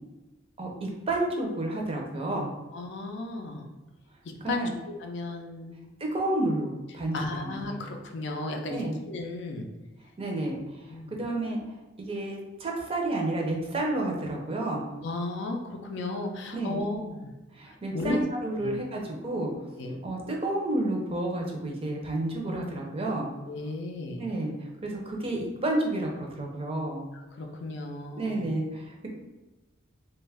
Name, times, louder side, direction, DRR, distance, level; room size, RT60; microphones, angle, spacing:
voice 1, 0.6-2.5 4.4-4.7 6.0-7.8 8.7-9.0 10.2-11.6 12.0-14.8 16.5-16.8 17.5-19.5 20.0-23.3 24.2-27.0 28.2-29.1, right 2 dB, 30° right, 0 dB, 0.5 m, -30 dB
voice 2, 2.7-3.7 4.5-4.7 5.0-5.8 7.1-9.7 10.9-11.1 15.0-17.3 17.9-18.2 18.6-18.7 19.8-20.0 23.5-24.2 27.4-28.5, left 2 dB, 60° left, 3 dB, 0.4 m, -34 dB
3.0 x 2.2 x 3.3 m, 1.1 s
head